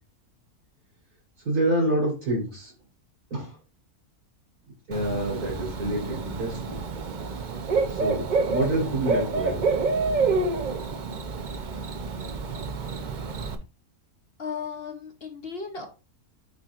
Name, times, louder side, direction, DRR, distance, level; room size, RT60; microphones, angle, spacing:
voice 1, 1.5-2.7 3.3-3.5 4.9-6.8 7.9-9.7, right 1 dB, 80° right, -3 dB, 3.9 m, -27 dB
Bird / Cricket, 4.9-13.5, right 4 dB, 55° right, 0.5 m, -28 dB
voice 2, 14.4-15.9, left 5 dB, 50° left, 4 dB, 0.9 m, -35 dB
9.1 x 4.4 x 2.4 m, 0.32 s
omnidirectional pair, 1.6 m